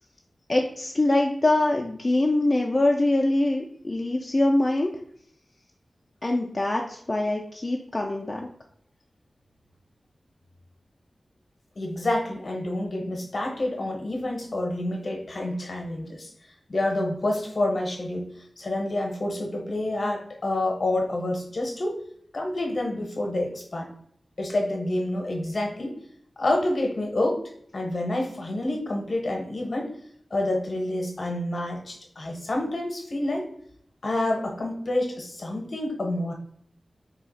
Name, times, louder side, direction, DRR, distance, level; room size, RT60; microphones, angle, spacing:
voice 1, 0.5-4.9 6.2-8.5, left 2 dB, 40° left, 0 dB, 0.4 m, -23 dB
voice 2, 11.8-16.3 16.7-18.3 18.6-22.0 22.3-23.9 24.4-26.0 26.4-27.4 27.7-29.9 30.3-33.5 34.0-36.3, left 1 dB, 60° left, 2 dB, 0.8 m, -28 dB
2.8 x 2.3 x 4.0 m, 0.66 s
cardioid pair, 45°, 0 cm